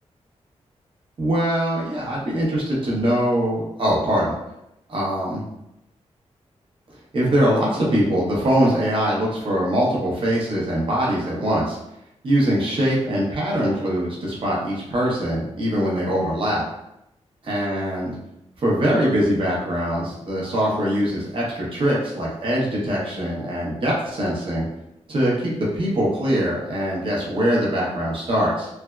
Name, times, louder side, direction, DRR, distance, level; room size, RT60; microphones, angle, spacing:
voice 1, 1.2-4.4 4.9-5.4 7.1-11.8 12.2-16.6 17.4-18.1 18.6-24.7 25.1-28.7, equal, 50° right, -5 dB, 0.9 m, -22 dB
3.3 x 2.0 x 2.3 m, 0.85 s
wide cardioid pair, 120°, 11 cm